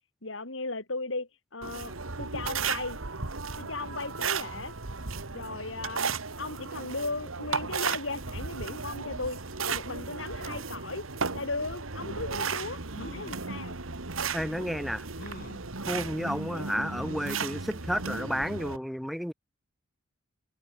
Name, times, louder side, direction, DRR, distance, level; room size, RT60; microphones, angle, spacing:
voice 1, 0.2-3.0 3.6-4.7 5.3-13.8 16.5-16.6, left 3 dB, 65° left, 3.9 m, -37 dB
sound 1, 1.6-18.8, right 5 dB, 85° right, 2.1 m, -35 dB
sound 2, 12.9-13.5 14.2-14.3 15.2-15.7 17.0-17.5 18.0-18.1 18.4-18.5, left 1 dB, 50° left, 4.8 m, -46 dB
voice 2, 14.3-15.1 15.9-19.3, equal, ahead, 1.9 m, -31 dB
head